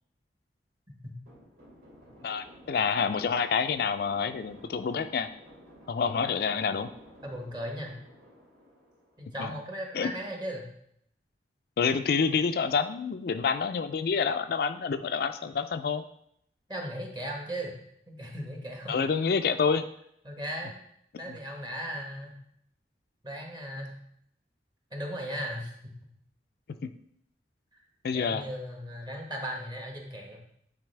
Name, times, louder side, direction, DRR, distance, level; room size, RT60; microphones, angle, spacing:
sound 1, 1.3-9.5, equal, 70° right, 2.7 m, -53 dB
voice 1, 2.2-5.3 5.9-6.9 9.4-9.5 9.9-10.1 11.8-16.0 18.9-19.9 21.3-21.4 26.8-26.9 28.0-28.4, left 5 dB, 60° left, 9 dB, 0.4 m, -28 dB
voice 2, 7.2-8.0 9.2-10.7 16.7-17.8 18.1-18.9 20.2-20.8 21.2-22.3 23.2-23.9 24.9-25.9 28.1-30.4, equal, 25° right, 1 dB, 1.2 m, -37 dB
9.4 x 4.2 x 3.3 m, 0.71 s
head